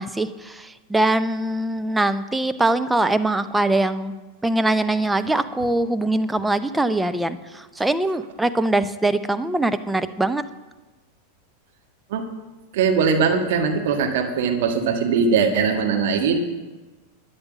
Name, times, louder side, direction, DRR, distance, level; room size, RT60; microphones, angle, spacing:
voice 1, 0.0-4.1 4.4-10.4, right 2 dB, 5° right, 10 dB, 0.6 m, -22 dB
voice 2, 12.7-16.4, right 5 dB, 50° right, 4 dB, 1.6 m, -20 dB
12.5 x 9.6 x 6.2 m, 1.2 s
figure-of-eight pair, 90°, 0 cm